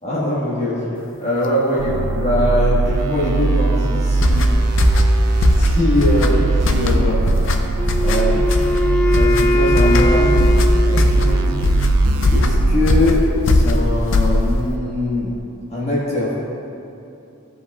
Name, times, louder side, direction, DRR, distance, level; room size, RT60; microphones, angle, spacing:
voice 1, 0.0-1.9 2.2-4.5 5.6-7.2 8.0-8.4 9.1-10.5 10.8-11.5 12.3-15.3 15.7-16.3, left 1 dB, 30° left, -8 dB, 1.5 m, -22 dB
sound 1, 1.8-13.1, right 2 dB, 90° right, 0.5 m, -19 dB
sound 2, 4.1-14.7, left 2 dB, 60° left, 0.5 m, -20 dB
Wind instrument woodwind instrument, 7.8-11.8, left 2 dB, 5° left, 0.4 m, -21 dB
15.0 x 5.3 x 2.4 m, 2.7 s
head